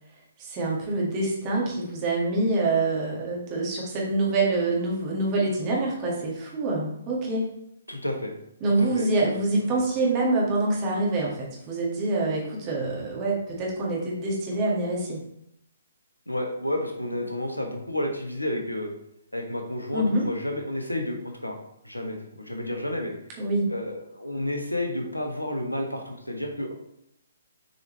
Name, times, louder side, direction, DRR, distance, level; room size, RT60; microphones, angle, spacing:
voice 1, 0.4-7.5 8.6-15.2 19.9-20.2 23.4-23.7, right 2 dB, 25° right, -3 dB, 1.9 m, -26 dB
voice 2, 7.9-8.3 8.8-9.1 9.7-9.8 16.3-18.9 19.3-21.6 21.8-23.1 23.7-26.7, left 1 dB, 85° left, 3 dB, 1.3 m, -31 dB
7.0 x 4.6 x 3.2 m, 0.77 s
figure-of-eight pair, 130°, 0 cm